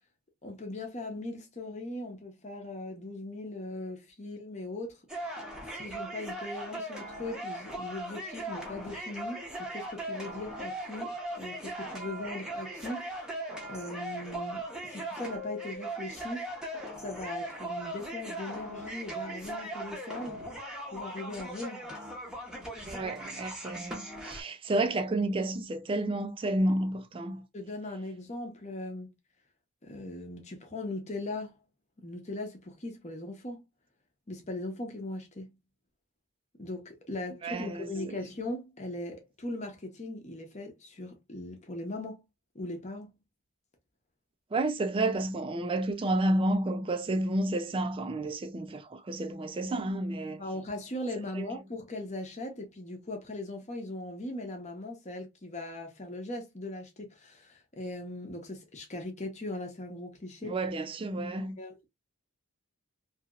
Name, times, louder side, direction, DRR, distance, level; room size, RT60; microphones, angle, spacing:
voice 1, 0.4-5.0 5.7-13.4 13.7-16.5 17.0-20.4 20.9-21.9 22.9-23.1 27.5-29.1 29.8-31.6 32.0-33.7 34.3-35.5 36.6-42.3 42.5-43.2 50.4-60.6 61.2-61.3 61.6-61.9, left 2 dB, 30° left, 0.9 m, -39 dB
sound 1, 5.1-24.4, right 1 dB, 5° right, 0.8 m, -39 dB
voice 2, 22.9-27.4 37.4-37.9 44.5-50.4 51.3-51.5 60.4-61.6, right 2 dB, 25° right, 0.3 m, -30 dB
2.9 x 2.8 x 2.4 m
head